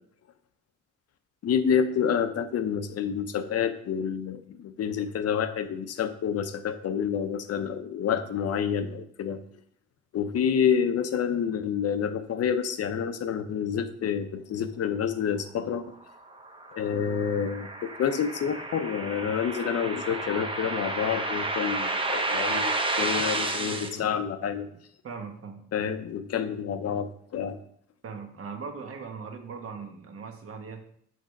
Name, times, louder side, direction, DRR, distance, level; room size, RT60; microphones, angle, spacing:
voice 1, 1.4-9.4 10.1-15.8 16.7-24.7 25.7-27.6, left 7 dB, 55° left, 10 dB, 0.7 m, -28 dB
sound 1, 16.1-23.9, right 2 dB, 15° right, 0.8 m, -31 dB
voice 2, 23.5-24.8 25.0-25.9 28.0-30.9, right 5 dB, 50° right, 5 dB, 1.2 m, -40 dB
6.4 x 3.4 x 5.3 m, 0.66 s
cardioid pair, 90°, 30 cm